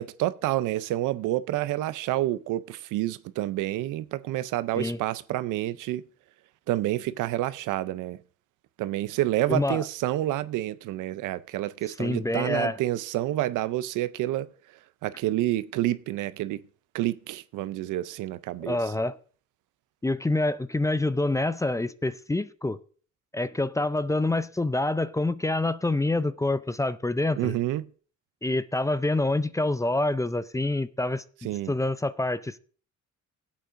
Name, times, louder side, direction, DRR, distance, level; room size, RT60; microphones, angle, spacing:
voice 1, 0.0-6.0 6.7-8.2 8.8-14.5 15.0-16.6 16.9-18.8 27.4-27.9 31.4-31.7, right 15 dB, 85° right, 0.6 m, -28 dB
voice 2, 9.5-9.8 12.0-12.8 18.6-19.2 20.0-22.8 23.3-27.5 28.4-32.6, left 2 dB, 10° left, 0.4 m, -27 dB
17.0 x 8.4 x 2.5 m
cardioid pair, 90°, 30 cm